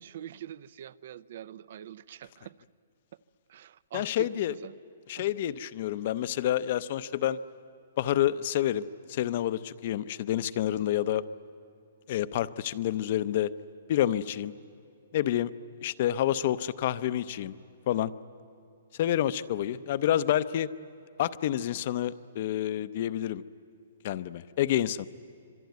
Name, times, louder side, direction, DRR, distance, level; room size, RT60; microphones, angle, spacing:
voice 1, 0.0-2.5 3.5-4.8 5.2-5.3, right 11 dB, 50° right, 0.5 m, -44 dB
voice 2, 3.9-4.5 5.1-7.4 8.0-11.2 12.1-13.5 13.9-14.5 15.1-15.5 15.8-17.5 17.9-18.1 19.0-20.7 21.2-23.4 24.0-25.1, left 12 dB, 40° left, 0.6 m, -28 dB
26.0 x 23.5 x 9.4 m
hypercardioid pair, 170°, 0 cm